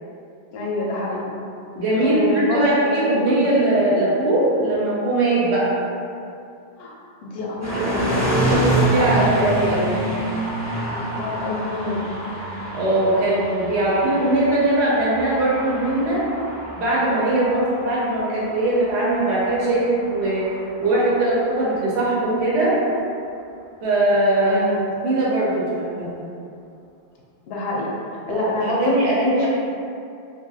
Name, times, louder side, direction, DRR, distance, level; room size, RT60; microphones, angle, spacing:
voice 1, 0.5-1.3 2.0-3.4 6.8-6.9 7.3-8.4 9.0-9.3 10.9-12.0 24.5-24.8 27.5-27.9 28.3-29.5, left 2 dB, 70° left, -4 dB, 0.8 m, -26 dB
voice 2, 1.8-5.7 7.7-7.8 8.5-10.0 12.7-16.2 16.7-20.5 20.8-22.9 23.8-24.6 25.0-26.1 28.3-29.5, right 1 dB, 85° right, -7 dB, 1.0 m, -20 dB
sound 1, 7.6-21.6, right 1 dB, 20° right, 0.6 m, -27 dB
2.9 x 2.8 x 2.3 m, 2.5 s
omnidirectional pair, 1.1 m